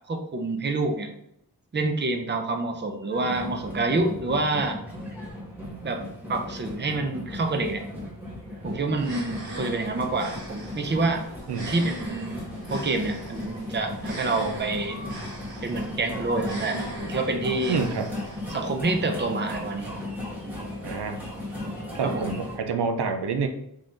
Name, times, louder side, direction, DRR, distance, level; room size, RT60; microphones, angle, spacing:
voice 1, 0.1-1.1 1.7-4.8 5.8-7.8 8.6-11.2 11.6-12.4 12.7-15.0 15.6-17.8 18.5-20.0 22.0-22.2, right 2 dB, 30° right, 5 dB, 0.5 m, -27 dB
sound 1, 3.1-22.5, left 1 dB, 5° right, 1.7 m, -36 dB
sound 2, 8.9-18.9, right 1 dB, 65° right, 1.6 m, -41 dB
voice 2, 17.7-18.1 20.8-21.2 21.9-23.5, right 5 dB, 80° right, 6 dB, 0.6 m, -27 dB
3.8 x 3.2 x 3.8 m, 0.76 s
wide cardioid pair, 90°, 39 cm